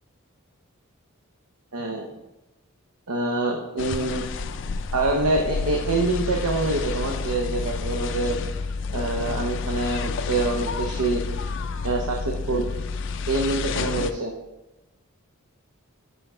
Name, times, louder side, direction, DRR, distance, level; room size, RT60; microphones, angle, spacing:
voice 1, 1.7-2.1 3.1-4.2 4.9-8.4 8.9-11.2 11.8-12.7 13.3-14.3, right 2 dB, 90° right, 1 dB, 0.8 m, -25 dB
sound 1, 3.8-14.1, left 4 dB, 55° left, 0.4 m, -30 dB
6.0 x 5.6 x 4.3 m, 1.0 s
head